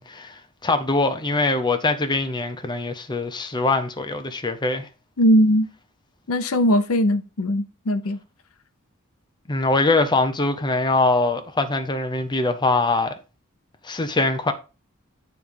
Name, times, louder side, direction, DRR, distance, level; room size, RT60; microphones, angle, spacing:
voice 1, 0.0-4.9 9.5-13.1 13.8-14.5, left 3 dB, 20° left, 0.7 m, -23 dB
voice 2, 5.2-5.7 6.3-8.2, equal, 75° left, 0.8 m, -19 dB
9.3 x 3.2 x 5.2 m
head